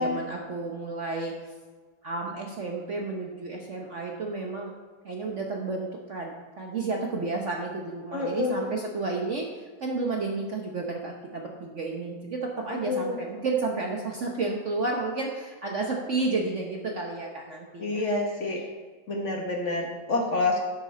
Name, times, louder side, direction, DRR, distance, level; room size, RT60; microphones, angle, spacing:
voice 1, 0.0-1.5 2.0-4.7 5.0-18.0 18.6-18.7, right 3 dB, 50° right, 0 dB, 1.0 m, -31 dB
voice 2, 8.1-8.6 12.7-13.2 17.8-18.6 19.1-20.6, left 3 dB, 45° left, 1 dB, 1.3 m, -28 dB
11.5 x 6.5 x 4.2 m, 1.5 s
omnidirectional pair, 2.1 m